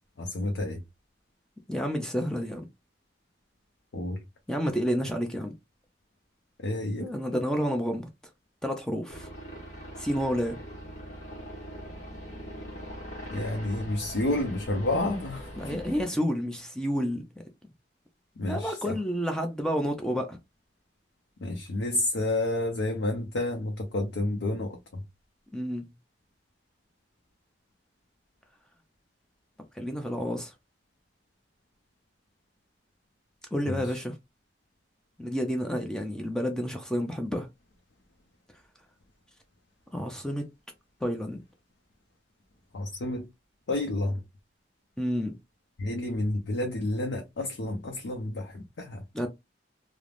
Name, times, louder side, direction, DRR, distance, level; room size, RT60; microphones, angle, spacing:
voice 1, 0.2-0.8 3.9-4.2 6.6-7.1 13.3-15.8 18.4-18.9 21.4-25.0 33.7-33.9 42.7-43.3 43.7-44.2 45.8-49.0, left 1 dB, 90° left, 0.5 m, -30 dB
voice 2, 1.7-2.7 4.5-5.5 7.0-8.1 8.6-9.3 10.0-10.6 15.6-17.2 18.5-20.4 25.5-25.9 29.7-30.5 33.5-34.2 35.2-37.5 39.9-40.5 41.0-41.4 45.0-45.3 49.1-49.3, equal, 5° left, 0.4 m, -30 dB
sound 1, 9.1-16.0, equal, 45° left, 1.1 m, -42 dB
3.2 x 2.0 x 2.4 m
head